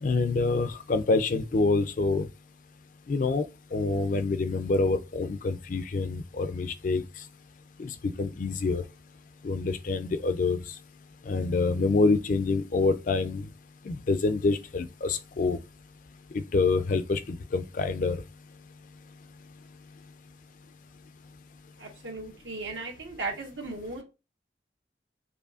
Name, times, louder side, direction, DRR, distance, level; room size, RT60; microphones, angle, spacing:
voice 1, 0.0-2.3 3.1-3.5 3.7-7.0 7.8-8.8 9.4-10.6 11.3-13.5 13.9-15.6 16.3-18.2, left 3 dB, 45° left, 0.4 m, -26 dB
voice 2, 21.8-24.0, right 3 dB, 85° right, 1.3 m, -36 dB
5.0 x 2.6 x 2.4 m
head